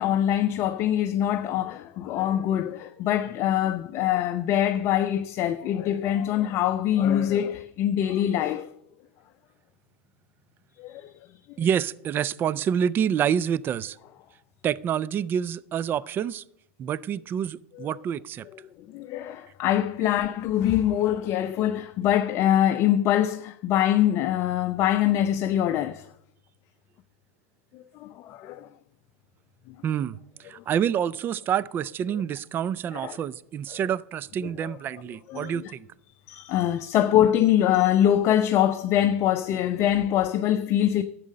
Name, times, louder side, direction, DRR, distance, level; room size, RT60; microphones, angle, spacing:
voice 1, 0.0-8.7 10.8-11.3 17.7-17.9 18.8-26.1 27.7-28.7 29.7-29.8 30.5-30.6 32.9-33.2 33.7-33.8 34.6-34.8 35.3-35.7 36.3-41.0, left 11 dB, 40° left, 0.6 m, -24 dB
voice 2, 11.6-14.0 14.6-16.4 16.8-18.5 29.8-30.2 30.5-35.9, right 9 dB, 25° right, 0.4 m, -27 dB
12.5 x 7.5 x 6.6 m
hypercardioid pair, 115°, 8 cm